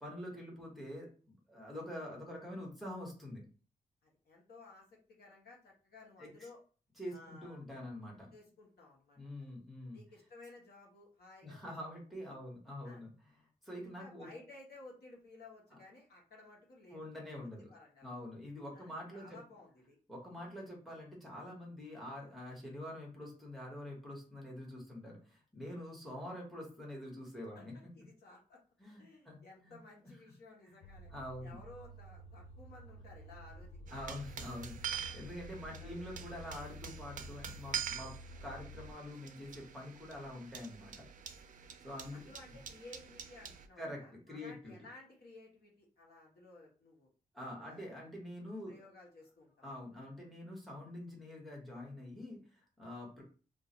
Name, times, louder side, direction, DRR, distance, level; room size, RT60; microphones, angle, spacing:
voice 1, 0.0-3.4 6.2-6.5 7.0-8.3 9.2-10.0 11.4-13.1 13.6-14.3 16.9-17.7 18.0-19.4 20.1-27.7 28.8-29.8 30.6-30.8 31.1-31.6 33.9-38.1 38.4-40.9 41.8-42.2 43.8-44.8 47.3-48.8 49.6-53.2, left 1 dB, ahead, -2 dB, 1.1 m, -46 dB
voice 2, 4.0-6.6 7.1-7.6 8.3-9.5 9.9-11.8 12.8-13.0 13.8-17.2 17.4-18.1 18.7-20.0 27.5-27.7 27.9-28.6 29.0-31.1 31.4-34.0 34.9-35.0 35.8-36.1 41.9-47.1 47.6-48.1 48.7-49.7 49.9-50.1, left 2 dB, 70° left, -1 dB, 1.1 m, -56 dB
sound 1, 30.8-38.9, left 1 dB, 45° left, 0.4 m, -51 dB
sound 2, 33.9-43.7, right 8 dB, 55° right, 0.4 m, -45 dB
2.4 x 2.4 x 4.0 m, 0.37 s
wide cardioid pair, 155°, 17 cm